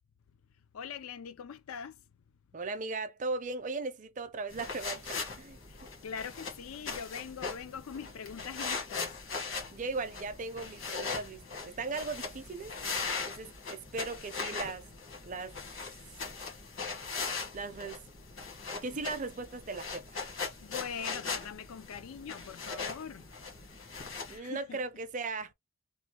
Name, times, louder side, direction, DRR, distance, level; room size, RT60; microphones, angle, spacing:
voice 1, 0.7-1.9 6.0-9.2 20.6-23.3 24.3-24.8, left 7 dB, 90° left, 0.4 m, -42 dB
voice 2, 2.5-5.6 9.7-12.9 13.2-14.9 15.2-15.6 17.5-18.1 18.8-20.2 23.9-25.5, right 3 dB, 35° right, 0.5 m, -38 dB
sound 1, 4.5-24.4, left 4 dB, 60° left, 1.3 m, -40 dB
3.1 x 2.2 x 2.8 m
head